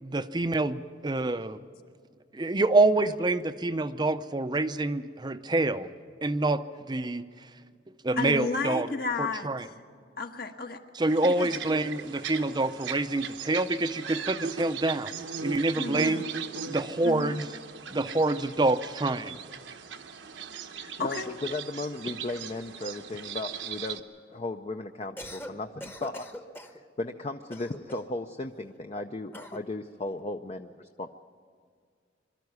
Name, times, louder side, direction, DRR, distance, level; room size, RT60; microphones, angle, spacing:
voice 1, 0.0-1.6 2.3-5.9 6.2-6.6 6.9-7.3 8.0-8.9 9.2-9.7 10.9-15.1 15.4-16.2 16.6-17.5 17.9-19.4, right 2 dB, 25° right, 12 dB, 0.6 m, -26 dB
voice 2, 8.2-9.5 10.2-10.8 11.2-11.5 15.7-16.2 17.0-17.4 20.7-21.3, left 4 dB, 55° left, 5 dB, 1.4 m, -32 dB
sound 1, 11.1-24.0, right 6 dB, 80° right, 1.1 m, -39 dB
voice 3, 21.0-24.0 24.3-26.3 26.7-31.1, left 2 dB, 35° left, 6 dB, 0.5 m, -36 dB
Cough, 25.0-25.5 25.8-26.8 27.5-28.2 29.3-29.7, equal, 10° left, 1.0 m, -42 dB
23.5 x 13.0 x 9.5 m, 2.1 s
head